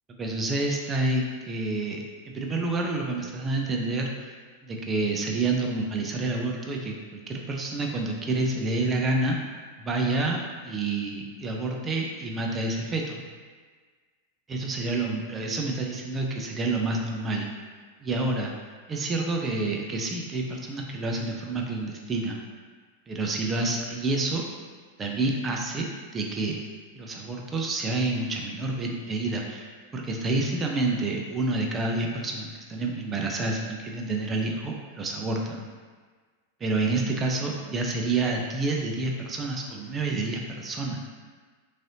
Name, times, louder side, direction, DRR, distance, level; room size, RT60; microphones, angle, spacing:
voice 1, 0.2-4.3 4.6-9.4 9.8-13.2 14.5-17.5 18.0-18.5 18.9-22.4 23.1-24.5 25.0-26.6 27.0-35.6 36.6-41.0, right 2 dB, 25° right, 0 dB, 0.5 m, -28 dB
3.1 x 2.6 x 2.7 m, 1.5 s
hypercardioid pair, 100°, 0 cm